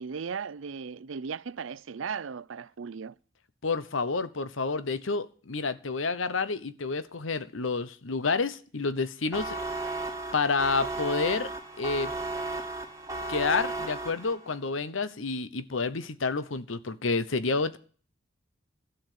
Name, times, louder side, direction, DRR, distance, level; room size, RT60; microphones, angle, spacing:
voice 1, 0.0-3.1, right 6 dB, 85° right, 0.5 m, -36 dB
voice 2, 3.6-9.6 10.3-11.5 11.8-12.1 13.3-17.8, left 4 dB, 85° left, 1.0 m, -29 dB
sound 1, 9.3-14.6, right 2 dB, 15° right, 1.5 m, -34 dB
12.5 x 7.1 x 9.6 m
head